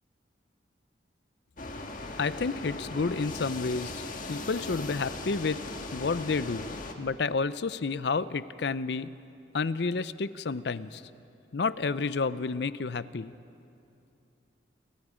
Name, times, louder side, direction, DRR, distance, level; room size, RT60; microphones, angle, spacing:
sound 1, 1.6-6.9, left 2 dB, 45° left, 1.6 m, -39 dB
voice 1, 2.2-4.0 4.3-5.6 5.9-9.1 9.5-11.0 11.5-13.3, left 4 dB, 65° left, 15 dB, 0.5 m, -30 dB
sound 2, 4.1-5.6, right 2 dB, 70° right, 0.9 m, -51 dB
29.5 x 24.0 x 5.1 m, 2.6 s
head